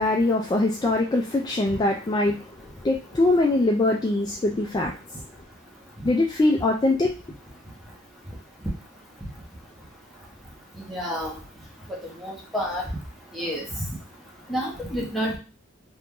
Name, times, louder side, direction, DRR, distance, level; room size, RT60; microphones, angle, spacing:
voice 1, 0.0-2.5 2.8-4.9 6.0-7.1, left 2 dB, 20° left, 1 dB, 0.3 m, -22 dB
voice 2, 10.9-11.3 11.9-12.8 13.3-13.6 14.5-15.4, equal, ahead, -3 dB, 1.0 m, -29 dB
2.9 x 2.6 x 3.6 m, 0.33 s
head